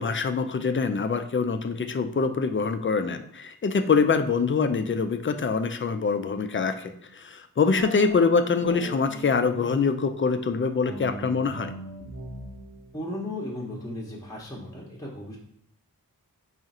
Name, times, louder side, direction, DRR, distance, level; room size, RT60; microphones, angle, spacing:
voice 1, 0.0-11.7, left 5 dB, 35° left, 8 dB, 0.4 m, -24 dB
sound 1, 7.8-10.0 10.8-14.1, right 2 dB, 65° right, 0.9 m, -41 dB
voice 2, 12.9-15.4, left 1 dB, 10° left, -3 dB, 0.8 m, -35 dB
3.7 x 2.4 x 4.1 m, 0.71 s
wide cardioid pair, 50°, 37 cm